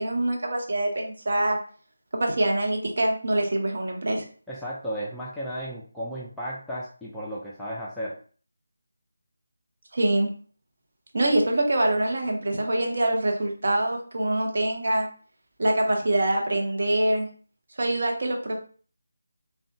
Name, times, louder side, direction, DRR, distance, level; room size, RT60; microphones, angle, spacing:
voice 1, 0.0-1.6 2.1-4.2 9.9-10.3 11.1-15.1 15.6-17.3 17.8-18.6, right 1 dB, 50° right, 2 dB, 0.6 m, -24 dB
voice 2, 4.5-8.1, equal, ahead, -9 dB, 0.4 m, -34 dB
2.7 x 2.2 x 2.6 m, 0.41 s
figure-of-eight pair, 160°, 0 cm